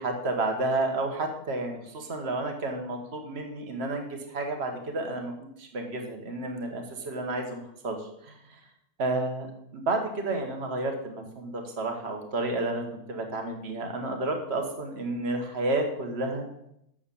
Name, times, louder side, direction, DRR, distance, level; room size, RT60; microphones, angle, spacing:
voice 1, 0.0-8.6 9.0-9.5 9.7-16.4, right 2 dB, 40° right, 4 dB, 1.6 m, -31 dB
7.9 x 7.1 x 7.0 m, 0.77 s
omnidirectional pair, 1.7 m